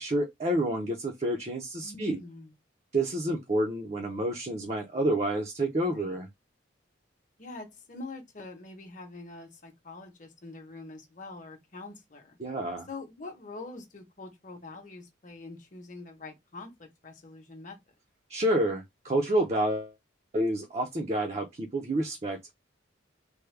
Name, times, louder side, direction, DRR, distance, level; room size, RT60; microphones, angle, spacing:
voice 1, 0.0-2.2 2.9-6.3 12.4-12.9 18.3-19.9 20.3-22.4, right 1 dB, 35° right, 0.5 m, -29 dB
voice 2, 1.8-2.5 5.8-6.2 7.4-12.4 12.9-17.8, left 3 dB, 40° left, 0.8 m, -44 dB
3.4 x 2.2 x 3.2 m
head